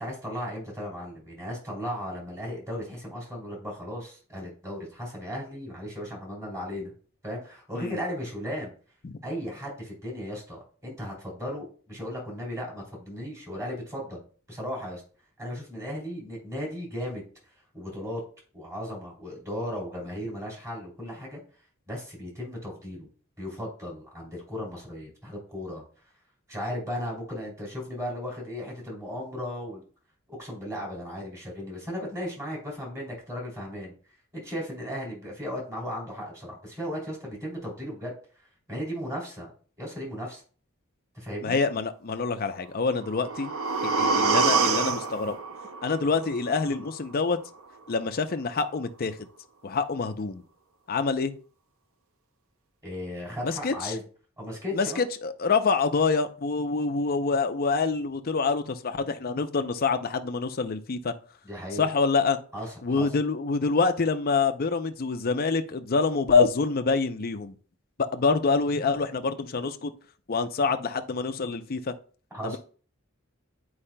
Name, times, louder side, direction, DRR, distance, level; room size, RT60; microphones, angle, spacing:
voice 1, 0.0-6.9 7.2-8.7 9.2-14.2 14.5-15.0 15.4-17.2 17.7-18.2 18.5-21.4 21.9-23.1 23.4-25.8 26.5-29.8 30.3-33.9 34.3-38.1 38.7-39.5 39.8-40.4 41.1-41.6 52.8-54.0 54.4-55.0 61.4-61.9 62.5-63.1 72.3-72.6, equal, 15° right, -3 dB, 2.8 m, -36 dB
voice 2, 41.4-43.5 43.8-45.4 45.8-47.4 47.9-49.2 49.6-50.4 50.9-51.3 53.4-53.9 54.7-61.1 61.7-62.4 62.8-67.5 68.0-69.9 70.3-71.9 72.4-72.6, left 4 dB, 45° left, 8 dB, 0.5 m, -26 dB
sound 1, 42.9-46.9 47.3-47.4, right 4 dB, 80° right, 0.6 m, -27 dB
9.9 x 4.8 x 2.2 m, 0.42 s
head